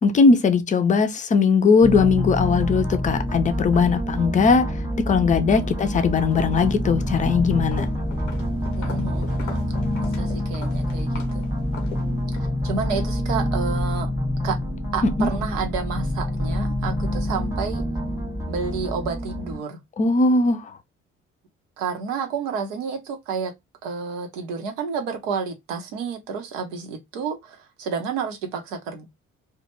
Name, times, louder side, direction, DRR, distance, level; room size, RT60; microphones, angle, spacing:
voice 1, 0.0-4.7 5.1-7.9 15.0-15.3 20.0-20.6, left 4 dB, 20° left, 0.4 m, -19 dB
sound 1, 1.8-19.6, equal, 5° right, 0.8 m, -26 dB
Walk footsteps, 5.9-6.1 6.4-12.5, left 5 dB, 85° left, 0.6 m, -41 dB
voice 2, 8.7-9.7 10.0-11.5 12.6-14.1 14.4-14.6 14.9-17.8 18.5-19.8 21.8-23.5 23.8-29.1, right 5 dB, 75° right, 0.7 m, -30 dB
2.2 x 2.1 x 2.9 m
figure-of-eight pair, 45°, 37 cm